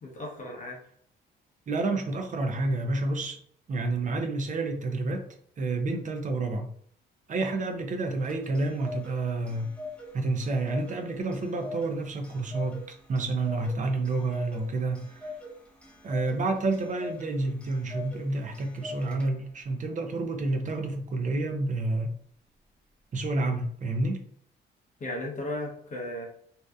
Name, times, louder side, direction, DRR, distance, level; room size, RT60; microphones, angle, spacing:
voice 1, 0.0-0.8 25.0-26.3, left 1 dB, 40° left, -2 dB, 0.7 m, -35 dB
voice 2, 1.7-3.4 3.7-5.2 5.6-6.7 7.3-9.7 10.1-15.4 16.0-22.1 23.1-24.2, right 2 dB, 40° right, 5 dB, 0.5 m, -29 dB
Clock, 8.0-19.6, left 2 dB, 5° left, 0.7 m, -43 dB
2.6 x 2.1 x 2.3 m, 0.63 s
cardioid pair, 90°, 20 cm